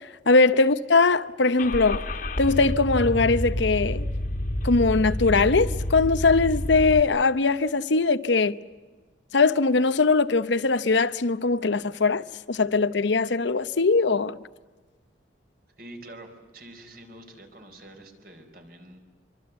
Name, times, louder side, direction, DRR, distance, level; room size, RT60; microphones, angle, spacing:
voice 1, 0.3-2.0 2.4-4.0 4.6-8.5 9.3-14.4, left 3 dB, 75° left, 0.8 m, -21 dB
Car / Engine starting, 1.6-7.0, left 1 dB, 45° left, 1.6 m, -29 dB
voice 2, 15.8-19.0, right 1 dB, 50° right, 4.5 m, -46 dB
26.0 x 24.0 x 8.1 m
head